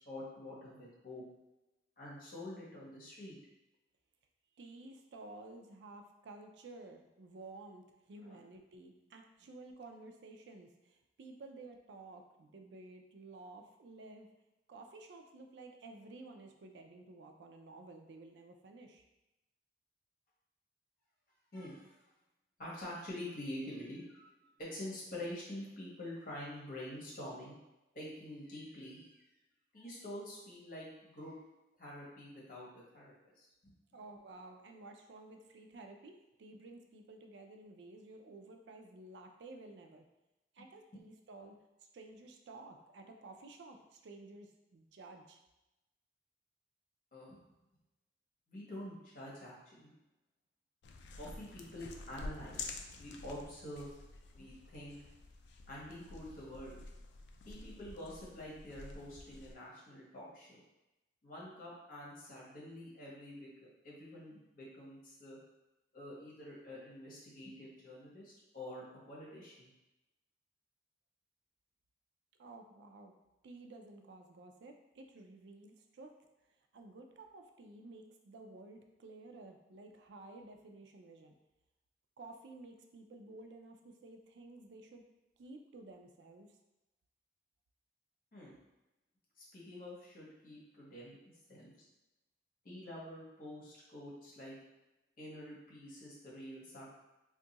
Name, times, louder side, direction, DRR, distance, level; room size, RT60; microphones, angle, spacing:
voice 1, 0.0-1.2 2.0-3.4 8.2-8.4 21.5-21.9 22.6-24.3 24.6-27.6 27.9-29.2 29.7-31.4 31.8-33.7 47.1-47.4 48.5-49.9 51.2-53.9 54.3-55.0 55.7-56.8 57.4-60.6 61.2-63.5 63.8-65.4 65.9-69.7 88.3-88.5 89.4-91.2 91.5-91.7 92.6-94.6 95.2-96.9, left 1 dB, 50° left, -5 dB, 1.1 m, -47 dB
voice 2, 4.6-14.3 14.7-19.0 33.9-40.0 40.5-41.6 41.9-45.4 72.4-73.1 73.4-76.2 76.7-81.4 82.2-85.0 85.4-86.6, right 2 dB, 75° right, 4 dB, 0.4 m, -53 dB
sound 1, 50.8-59.5, left 3 dB, 80° left, 0.4 m, -49 dB
2.6 x 2.4 x 3.9 m, 0.95 s
head